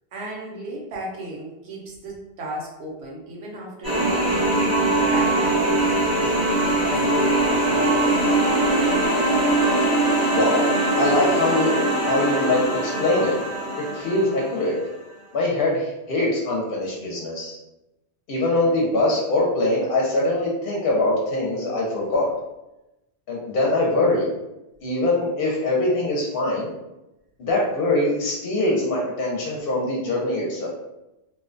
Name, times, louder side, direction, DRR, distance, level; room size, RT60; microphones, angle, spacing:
voice 1, 0.1-4.5 5.0-8.3 19.2-19.3, right 1 dB, 80° right, -2 dB, 1.0 m, -36 dB
sound 1, 3.8-14.6, right 2 dB, 25° right, 0.6 m, -21 dB
voice 2, 10.3-10.7 11.0-11.7 12.0-13.4 13.9-14.8 15.3-17.6 18.3-22.3 23.3-24.3 24.8-26.7 27.4-30.7, left 2 dB, 65° left, -3 dB, 0.7 m, -23 dB
2.4 x 2.2 x 2.4 m, 0.94 s
omnidirectional pair, 1.1 m